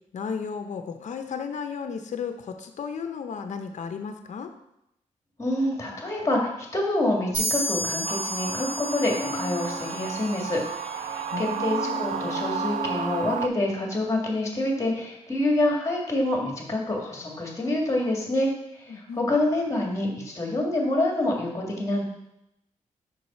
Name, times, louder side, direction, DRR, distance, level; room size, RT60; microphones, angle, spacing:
voice 1, 0.1-4.5 11.3-12.1 18.9-19.3, left 6 dB, 65° left, 7 dB, 0.6 m, -34 dB
voice 2, 5.4-10.6 10.9-22.0, left 1 dB, 20° left, 0 dB, 1.7 m, -27 dB
sound 1, 7.3-10.9, equal, 85° right, 2.5 m, -32 dB
sound 2, 8.0-13.5, right 8 dB, 65° right, 0.4 m, -32 dB
Bowed string instrument, 8.2-13.6, left 4 dB, 5° left, 0.5 m, -38 dB
5.3 x 4.7 x 4.2 m, 0.83 s
cardioid pair, 90°, 13 cm